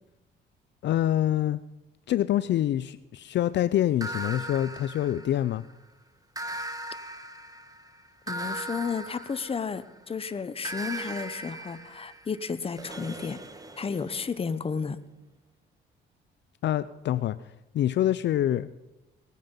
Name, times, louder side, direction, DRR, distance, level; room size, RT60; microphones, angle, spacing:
voice 1, 0.8-1.6 2.1-5.6 16.6-17.5 17.7-18.7, left 12 dB, 65° left, 15 dB, 0.5 m, -26 dB
sound 1, 4.0-5.7 6.3-10.0 10.6-14.4, right 1 dB, 15° right, 1.4 m, -39 dB
voice 2, 8.3-13.4 13.8-15.0, left 5 dB, 30° left, 13 dB, 0.8 m, -32 dB
19.0 x 9.3 x 5.4 m, 0.98 s
cardioid pair, 90°, 20 cm